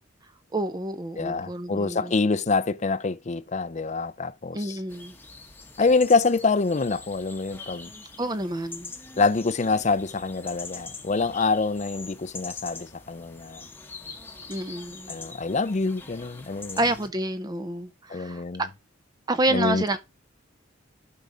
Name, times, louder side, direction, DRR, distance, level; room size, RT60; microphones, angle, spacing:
voice 1, 0.5-2.1 4.5-5.2 8.2-8.9 14.5-15.1 16.8-18.7 19.3-20.0, right 1 dB, 20° right, 0.5 m, -28 dB
voice 2, 1.2-4.8 5.8-7.9 9.2-13.6 15.1-16.8 18.1-18.6 19.5-20.0, left 4 dB, 35° left, 0.5 m, -25 dB
sound 1, 4.9-17.1, left 4 dB, 10° left, 1.0 m, -43 dB
12.0 x 4.6 x 3.8 m
head